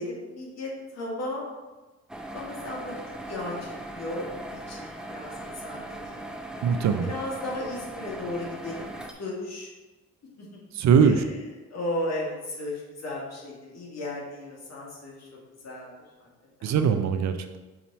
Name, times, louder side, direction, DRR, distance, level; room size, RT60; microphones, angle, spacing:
voice 1, 0.0-1.4 2.3-3.0 3.3-6.2 6.9-9.7 10.4-10.5 11.0-11.4 11.7-12.7 13.0-15.3 15.6-15.9 16.6-16.7, left 1 dB, 60° left, -3 dB, 2.1 m, -35 dB
sound 1, 2.1-9.1, right 1 dB, ahead, 0.6 m, -39 dB
voice 2, 6.6-7.1 10.7-11.2 16.6-17.6, right 6 dB, 65° right, 8 dB, 0.6 m, -21 dB
6.0 x 4.1 x 4.2 m, 1.2 s
cardioid pair, 90°, 30 cm